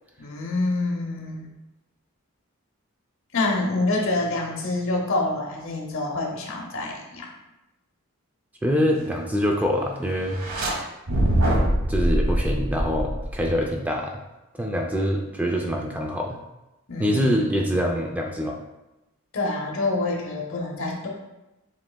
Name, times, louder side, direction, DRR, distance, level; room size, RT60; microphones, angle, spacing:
voice 1, 0.2-1.5 3.3-7.3 10.6-10.7 16.9-17.4 19.3-21.1, left 2 dB, 60° left, 0 dB, 0.9 m, -27 dB
voice 2, 8.6-10.4 11.9-14.2 14.6-16.4 17.0-18.6, equal, 5° right, 1 dB, 0.3 m, -24 dB
sound 1, 10.3-10.7 11.1-13.6, equal, 80° right, 1.0 m, -23 dB
7.3 x 3.1 x 2.2 m, 0.98 s
head